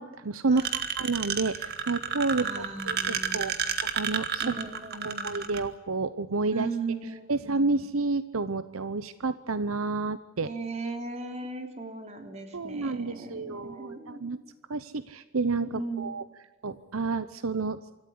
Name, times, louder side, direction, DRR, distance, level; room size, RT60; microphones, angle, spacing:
voice 1, 0.0-3.5 3.9-4.6 5.0-6.7 7.3-10.5 12.5-14.4 14.7-16.2 16.6-17.8, right 3 dB, 80° right, 14 dB, 0.8 m, -30 dB
sound 1, 0.6-5.6, right 7 dB, 50° right, 1.9 m, -30 dB
voice 2, 2.4-3.6 4.4-5.4 6.5-7.7 10.4-14.4 15.7-16.1, right 3 dB, 30° right, 5 dB, 3.3 m, -37 dB
26.0 x 14.0 x 9.7 m, 1.1 s
head